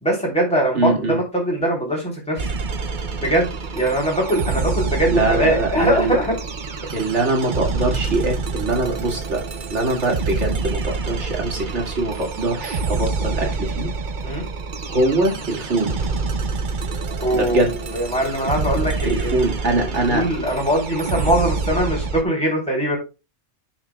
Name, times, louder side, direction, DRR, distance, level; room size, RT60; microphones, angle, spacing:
voice 1, 0.0-2.5 3.2-6.4 10.3-10.4 14.2-14.4 17.2-19.4 19.8-23.0, right 1 dB, 5° left, -3 dB, 3.1 m, -22 dB
voice 2, 0.7-1.2 5.1-6.2 6.9-9.4 9.7-13.9 14.9-16.0 17.3-17.7 19.0-20.2, right 2 dB, 75° right, 1 dB, 2.4 m, -22 dB
sound 1, 2.4-22.2, right 4 dB, 45° right, 0.9 m, -27 dB
10.0 x 6.0 x 2.3 m, 0.28 s
omnidirectional pair, 1.2 m